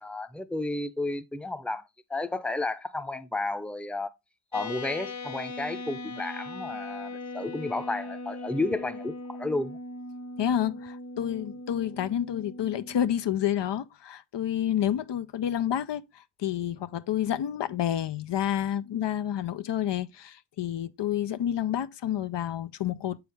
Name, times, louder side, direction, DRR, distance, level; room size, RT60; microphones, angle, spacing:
voice 1, 0.0-4.1 4.5-9.8, left 2 dB, 5° left, 0.6 m, -32 dB
sound 1, 4.5-13.1, left 2 dB, 45° left, 1.1 m, -39 dB
voice 2, 10.4-23.2, left 10 dB, 80° left, 0.6 m, -29 dB
7.1 x 4.7 x 3.4 m
cardioid pair, 50°, 42 cm